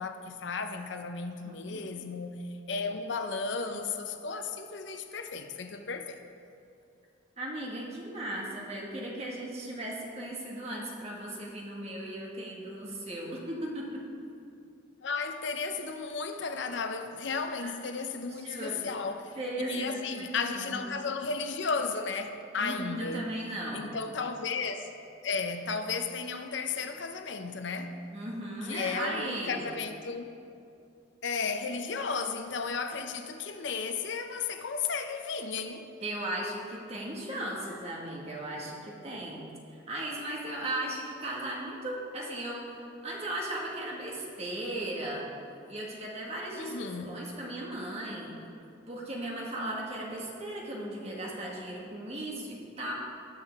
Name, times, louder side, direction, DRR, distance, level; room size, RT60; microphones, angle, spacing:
voice 1, 0.0-6.2 15.0-19.4 19.7-23.3 23.7-24.9 25.2-28.0 28.7-30.3 31.2-35.9 46.5-47.2, left 4 dB, 60° left, 7 dB, 0.6 m, -34 dB
voice 2, 1.4-1.8 7.4-14.0 17.6-17.7 18.3-18.8 19.4-20.8 22.6-23.9 28.1-29.6 36.0-45.3 45.7-48.3 48.9-52.9, right 1 dB, 30° right, -3 dB, 1.7 m, -37 dB
18.5 x 6.4 x 3.5 m, 2.5 s
head